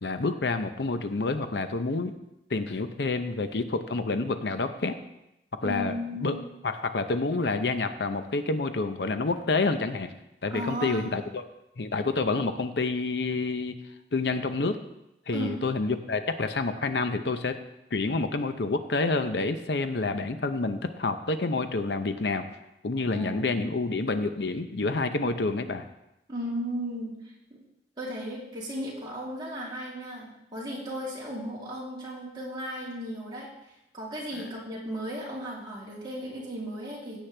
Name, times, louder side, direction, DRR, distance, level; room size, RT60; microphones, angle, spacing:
voice 1, 0.0-2.1 2.5-4.9 5.6-6.3 6.6-10.1 10.4-11.4 11.8-13.7 14.1-14.8 15.3-17.5 17.9-22.4 22.8-25.8 34.4-34.5, left 3 dB, 75° left, 9 dB, 0.7 m, -28 dB
voice 2, 5.6-6.5 10.5-11.2 15.3-15.5 23.1-23.7 26.3-27.1 27.5-27.6 28.0-33.5 33.9-37.2, equal, 25° right, -6 dB, 3.1 m, -35 dB
16.0 x 8.2 x 3.3 m, 0.87 s
head